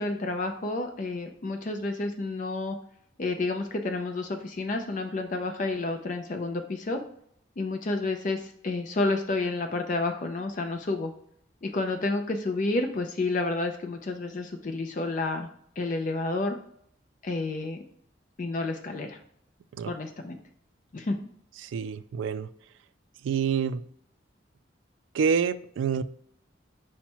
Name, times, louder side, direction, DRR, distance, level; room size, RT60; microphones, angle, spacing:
voice 1, 0.0-2.8 3.2-7.0 7.6-11.1 11.6-15.5 15.8-16.5 17.2-17.8 18.4-19.2 19.9-20.4 20.9-21.2, left 2 dB, 40° left, 5 dB, 0.4 m, -30 dB
voice 2, 21.6-22.5 23.2-23.8 25.1-26.0, right 6 dB, 75° right, 14 dB, 0.3 m, -27 dB
5.7 x 2.1 x 4.3 m, 0.66 s
head